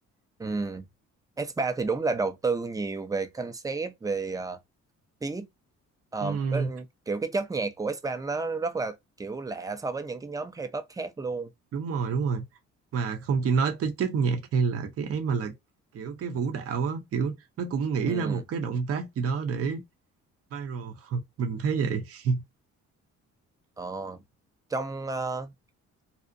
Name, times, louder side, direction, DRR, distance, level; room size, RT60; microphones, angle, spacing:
voice 1, 0.4-0.9 1.4-4.6 5.2-5.5 6.1-11.5 18.1-18.4 23.8-24.2 24.7-25.5, right 3 dB, 10° right, 0.4 m, -31 dB
voice 2, 6.2-6.7 11.7-12.4 12.9-15.5 15.9-19.8 20.5-22.4, right 5 dB, 50° right, 0.6 m, -28 dB
2.5 x 2.0 x 2.5 m
cardioid pair, 90°, 30 cm